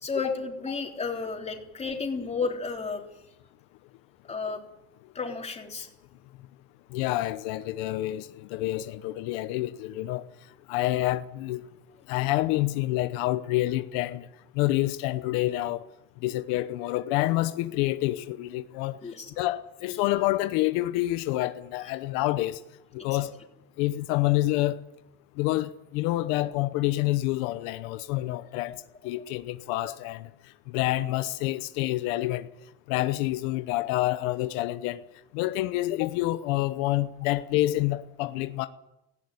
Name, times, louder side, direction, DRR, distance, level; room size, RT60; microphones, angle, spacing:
voice 1, 0.0-3.0 4.3-4.6 5.2-5.9 19.0-19.3 28.7-28.8, left 4 dB, 20° left, 3.6 m, -32 dB
voice 2, 6.9-10.2 10.7-11.6 12.1-14.3 14.5-15.9 16.2-19.0 19.4-22.6 22.9-23.3 23.8-24.8 25.4-30.3 30.7-32.5 32.9-35.0 35.3-38.7, left 17 dB, 85° left, 1.0 m, -28 dB
18.0 x 15.5 x 9.7 m
cardioid pair, 130°, 30 cm